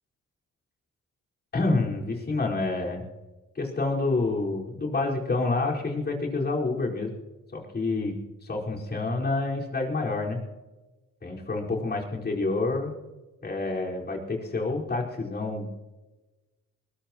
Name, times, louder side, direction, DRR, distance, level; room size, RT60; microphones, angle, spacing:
voice 1, 1.5-3.0 3.5-7.1 7.5-10.4 11.2-13.0 13.4-15.7, left 3 dB, 35° left, -2 dB, 4.7 m, -28 dB
21.5 x 20.0 x 3.0 m, 1.2 s
cardioid pair, 90°, 30 cm